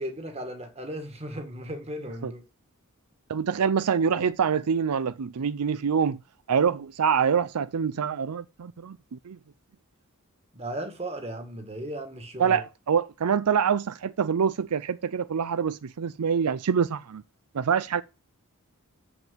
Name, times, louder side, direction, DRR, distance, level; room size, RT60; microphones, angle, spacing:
voice 1, 0.0-2.4 10.5-12.6, right 1 dB, 30° right, 1.8 m, -36 dB
voice 2, 3.3-6.2 6.5-9.4 12.4-17.2 17.5-18.0, right 7 dB, 85° right, 0.5 m, -25 dB
7.2 x 6.1 x 7.6 m
head